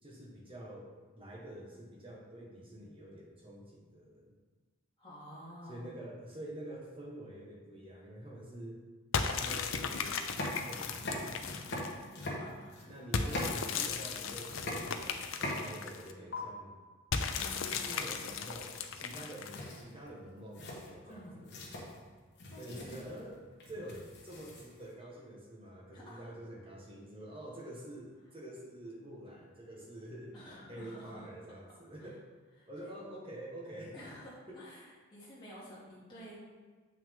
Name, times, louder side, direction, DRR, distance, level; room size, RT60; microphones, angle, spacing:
voice 1, 0.0-4.4 5.7-8.8 9.2-12.0 12.9-16.8 17.6-21.5 22.6-23.4 23.7-30.4 30.7-32.2 32.7-33.9 34.5-34.6, right 1 dB, 25° right, -3 dB, 1.3 m, -47 dB
voice 2, 5.0-5.9 12.4-13.0 17.4-18.1 20.7-20.8 21.0-21.3 22.5-23.1 23.7-23.9 25.9-26.2 30.3-31.5 32.0-32.1 32.6-32.9 33.9-36.3, equal, 20° left, -9 dB, 2.4 m, -50 dB
sound 1, 9.1-12.0 13.1-16.1 17.1-19.8, left 5 dB, 65° left, 0.5 m, -36 dB
sound 2, 10.1-14.1 14.4-16.0 16.3-16.4 18.9-19.2 19.4-24.9, left 1 dB, 50° left, 1.4 m, -41 dB
7.5 x 6.0 x 3.7 m, 1.4 s
head